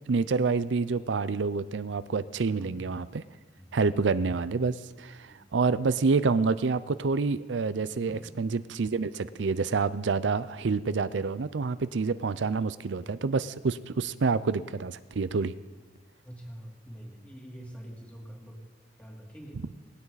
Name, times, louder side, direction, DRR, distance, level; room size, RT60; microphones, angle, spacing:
voice 1, 0.1-3.2 3.7-15.5, right 4 dB, 85° right, 15 dB, 0.5 m, -28 dB
voice 2, 16.2-18.6 19.0-19.6, equal, 5° left, -2 dB, 3.0 m, -45 dB
19.0 x 17.0 x 4.1 m, 1.3 s
head